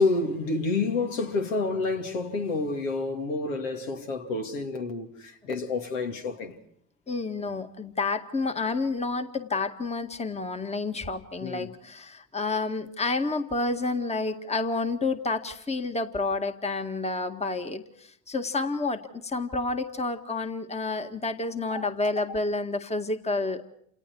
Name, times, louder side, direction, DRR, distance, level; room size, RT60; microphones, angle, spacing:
voice 1, 0.0-6.6 11.4-11.7 21.7-21.9, left 3 dB, 70° left, 2.6 m, -29 dB
voice 2, 7.1-23.6, left 3 dB, 15° left, 1.8 m, -29 dB
29.0 x 28.5 x 4.7 m
figure-of-eight pair, 55°, 40 cm